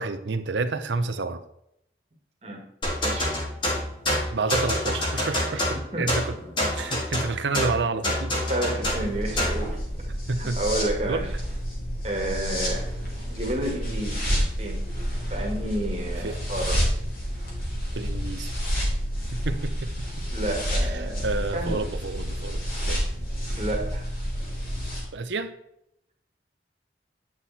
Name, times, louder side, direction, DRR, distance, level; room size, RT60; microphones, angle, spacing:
voice 1, 0.0-1.4 4.3-6.4 6.7-8.4 10.3-10.6 11.1-11.3 16.2-16.4 17.9-18.5 19.3-20.3 20.8-23.1 25.1-25.5, right 3 dB, 85° right, 9 dB, 0.7 m, -30 dB
sound 1, 2.8-9.7, left 1 dB, 25° left, 2.0 m, -27 dB
voice 2, 3.0-3.3 5.6-5.7 5.9-6.1 8.5-9.8 10.4-11.3 12.0-13.0 13.3-14.3 14.6-14.8 15.3-16.8 20.3-21.3 21.5-21.8 23.5-24.1, right 1 dB, 35° right, 0 dB, 1.9 m, -30 dB
sound 2, 8.8-25.0, equal, 50° left, 3.2 m, -29 dB
9.4 x 6.1 x 4.1 m, 0.76 s
head